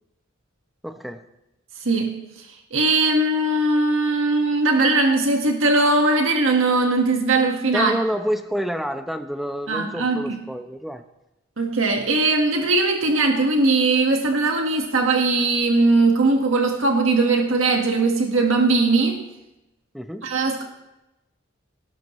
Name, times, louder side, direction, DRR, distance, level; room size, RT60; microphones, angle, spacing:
voice 1, 0.8-1.3 7.7-11.0 19.9-20.4, equal, ahead, 7 dB, 0.8 m, -28 dB
voice 2, 1.8-7.9 9.7-10.4 11.6-19.2 20.2-20.6, right 3 dB, 80° right, 2 dB, 1.7 m, -20 dB
19.5 x 17.5 x 3.2 m, 0.95 s
head